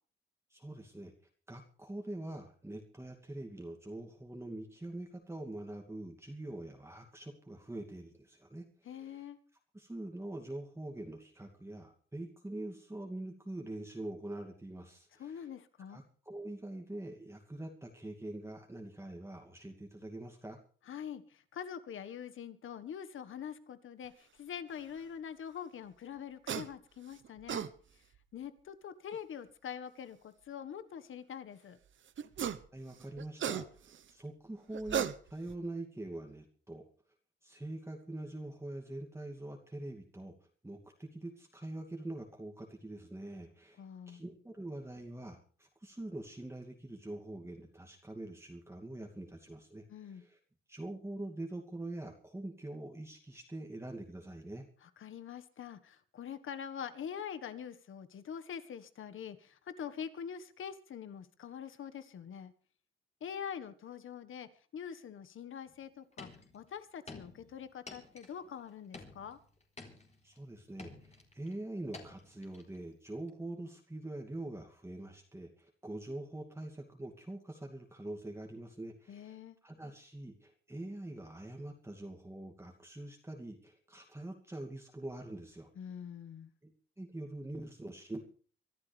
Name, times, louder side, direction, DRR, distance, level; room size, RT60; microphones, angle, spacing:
voice 1, 0.5-1.1 1.5-9.2 9.7-15.5 15.9-20.6 32.7-36.9 37.4-40.3 40.6-50.4 50.7-54.7 70.2-85.7 86.6-88.2, right 1 dB, 10° right, 1 dB, 2.5 m, -44 dB
voice 2, 8.8-9.4 15.2-16.0 20.9-27.7 28.3-31.8 43.8-44.2 49.9-50.2 54.8-62.5 63.2-69.4 79.1-79.6 85.8-86.5, left 8 dB, 70° left, 11 dB, 1.5 m, -44 dB
sound 1, 26.5-26.7 27.2-27.7 29.1-29.2 32.2-32.7 33.0-34.0 34.7-35.6, right 8 dB, 65° right, 1.0 m, -35 dB
sound 2, 65.7-65.8 66.1-66.7 67.1-68.6 68.9-70.4 70.8-71.5 71.9-72.8 73.3-73.4, left 3 dB, 30° left, 3.8 m, -51 dB
25.0 x 12.5 x 3.4 m, 0.43 s
cardioid pair, 90°, 21 cm